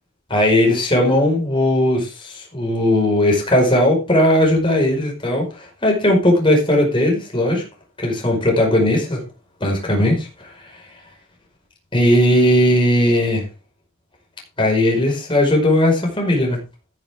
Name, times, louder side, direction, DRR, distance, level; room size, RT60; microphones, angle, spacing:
voice 1, 0.3-7.6 8.0-9.2 9.6-10.3 11.9-13.4 14.6-16.6, left 1 dB, 25° left, 0 dB, 5.1 m, -17 dB
13.0 x 11.0 x 3.6 m, 0.30 s
head